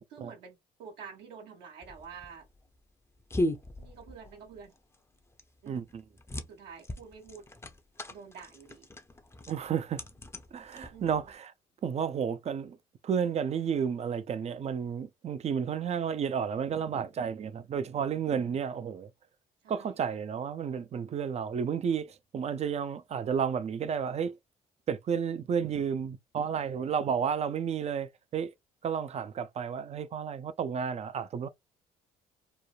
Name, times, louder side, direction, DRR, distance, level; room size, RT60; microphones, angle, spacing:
voice 1, 0.1-2.5 3.8-4.7 5.6-5.9 6.5-7.5 8.1-8.9 10.9-11.3 19.6-19.9, right 6 dB, 80° right, 1.2 m, -48 dB
sound 1, 1.8-11.3, left 1 dB, 15° left, 0.6 m, -38 dB
voice 2, 5.7-6.0 9.5-10.0 10.5-11.5 11.8-12.8 13.0-19.1 19.7-24.4 24.9-28.5 28.8-31.5, right 7 dB, 40° right, 0.5 m, -32 dB
3.2 x 2.0 x 2.3 m
hypercardioid pair, 60°, 18 cm